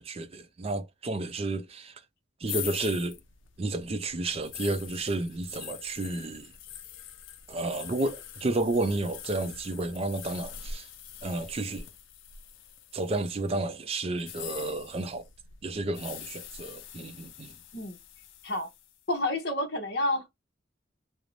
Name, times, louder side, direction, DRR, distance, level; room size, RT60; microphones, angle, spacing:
voice 1, 0.0-1.9 2.4-3.2 3.6-6.5 7.5-10.9 11.2-11.9 12.9-15.3 15.6-17.5, right 2 dB, 30° right, 0.4 m, -31 dB
sound 1, 2.4-13.4 14.1-19.0, left 9 dB, 85° left, 0.4 m, -44 dB
voice 2, 19.1-20.3, left 1 dB, 60° left, 0.8 m, -29 dB
2.5 x 2.0 x 2.9 m
head